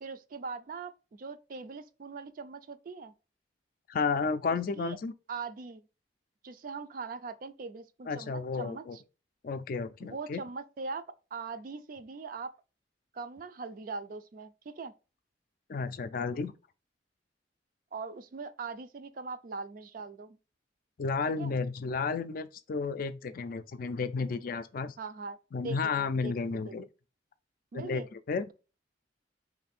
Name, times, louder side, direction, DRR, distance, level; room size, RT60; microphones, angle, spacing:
voice 1, 0.0-3.1 4.5-5.0 5.3-5.8 6.4-9.0 10.0-11.0 11.3-12.5 13.1-14.9 17.9-20.4 21.4-21.5 25.0-25.4 25.6-26.3 26.6-26.7 27.7-28.1, right 4 dB, 50° right, 0.4 m, -41 dB
voice 2, 3.9-5.1 8.1-9.0 9.4-10.4 15.7-16.5 21.0-24.9 25.5-26.8 27.7-28.0 28.3-28.4, left 4 dB, 50° left, 0.4 m, -32 dB
3.3 x 2.6 x 4.1 m
head